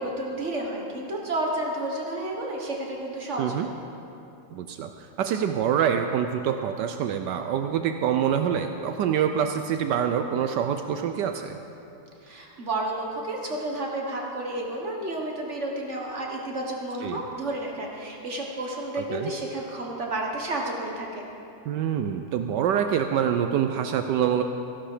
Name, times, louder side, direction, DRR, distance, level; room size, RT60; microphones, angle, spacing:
voice 1, 0.0-3.7 12.2-21.2, right 1 dB, 40° right, 0 dB, 1.6 m, -31 dB
voice 2, 4.5-11.6 17.0-17.2 19.0-19.3 21.7-24.4, right 8 dB, 75° right, 7 dB, 1.2 m, -26 dB
14.5 x 11.5 x 5.0 m, 2.8 s
omnidirectional pair, 2.0 m